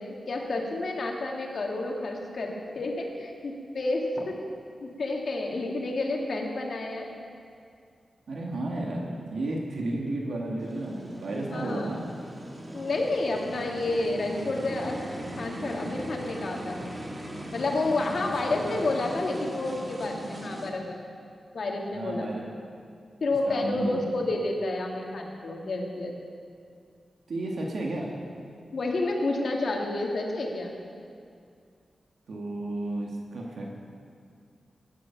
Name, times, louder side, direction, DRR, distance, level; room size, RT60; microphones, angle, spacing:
voice 1, 0.0-4.4 4.8-7.1 11.5-11.9 12.7-15.0 15.4-16.9 17.5-21.0 21.5-22.3 23.2-26.1 28.7-30.7, left 2 dB, 65° left, 1 dB, 2.1 m, -30 dB
voice 2, 8.3-12.1 18.6-18.7 21.9-22.6 23.5-24.3 27.3-28.1 32.3-33.7, right 1 dB, 80° right, -1 dB, 1.9 m, -32 dB
sound 1, 10.6-20.7, right 1 dB, 25° right, 2.0 m, -39 dB
16.0 x 11.0 x 5.9 m, 2.3 s
wide cardioid pair, 90°, 0 cm